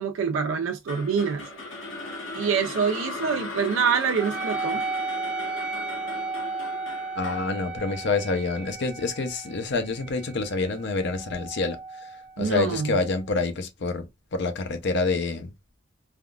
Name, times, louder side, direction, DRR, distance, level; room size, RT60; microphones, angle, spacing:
voice 1, 0.0-1.4 2.3-4.8 12.4-13.0, right 6 dB, 75° right, 0.4 m, -25 dB
sound 1, 0.9-9.1, left 2 dB, 80° left, 1.3 m, -37 dB
Wind instrument woodwind instrument, 4.2-13.1, right 3 dB, 5° right, 0.5 m, -35 dB
voice 2, 7.2-11.8 12.4-15.5, left 3 dB, 60° left, 0.6 m, -27 dB
3.5 x 2.3 x 2.3 m
head